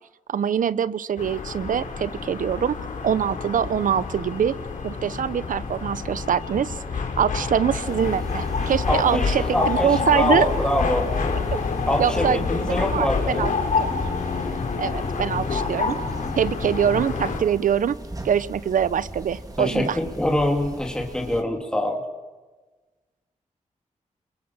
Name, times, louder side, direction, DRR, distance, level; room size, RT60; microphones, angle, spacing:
voice 1, 0.3-2.7 3.0-4.6 4.8-10.5 12.0-13.9 14.8-16.0 16.4-18.0 18.2-20.0, right 8 dB, 85° right, 17 dB, 0.7 m, -24 dB
sound 1, 1.2-17.4, left 4 dB, 85° left, 3.4 m, -27 dB
sound 2, 7.8-21.4, right 2 dB, 30° right, 2.7 m, -39 dB
voice 2, 8.9-11.1 11.9-13.5 19.6-22.0, left 1 dB, 5° left, 1 dB, 2.8 m, -25 dB
29.5 x 21.5 x 7.3 m, 1.3 s
cardioid pair, 70°, 13 cm